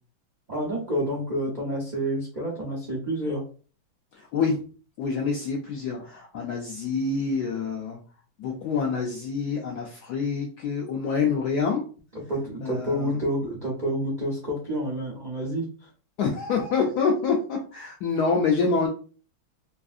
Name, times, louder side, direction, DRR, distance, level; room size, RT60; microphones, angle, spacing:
voice 1, 0.5-3.4 12.3-15.9, right 1 dB, 75° right, -3 dB, 0.4 m, -29 dB
voice 2, 4.1-4.6 5.0-8.0 8.4-11.8 12.6-13.2 16.2-18.9, left 5 dB, 75° left, 0 dB, 0.9 m, -26 dB
3.3 x 2.5 x 2.4 m, 0.38 s
omnidirectional pair, 2.2 m